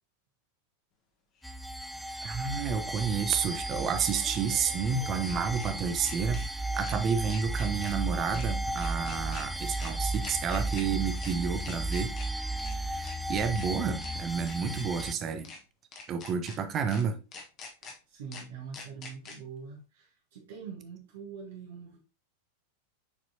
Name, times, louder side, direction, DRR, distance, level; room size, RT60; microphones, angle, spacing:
sound 1, 1.4-1.5 3.9-5.7 6.0-6.5 6.8-7.0 7.3-7.9 8.3-8.5 8.8-9.4 9.8-9.9 10.2-10.8 11.2-11.3 11.6-12.3 12.6-12.7 13.0-13.7 14.0-14.1 14.4-15.1 15.4-15.6 15.9-16.6 16.9-17.0 17.3-17.9 18.3-18.4 18.7-19.4, left 4 dB, 35° left, 1.4 m, -45 dB
sound 2, 1.4-15.1, right 1 dB, ahead, 0.4 m, -34 dB
voice 1, 2.2-12.1 12.7-15.5 16.1-17.2, right 6 dB, 30° right, 0.9 m, -30 dB
voice 2, 18.1-22.0, right 6 dB, 55° right, 1.4 m, -44 dB
7.2 x 4.6 x 2.9 m
figure-of-eight pair, 90°, 0 cm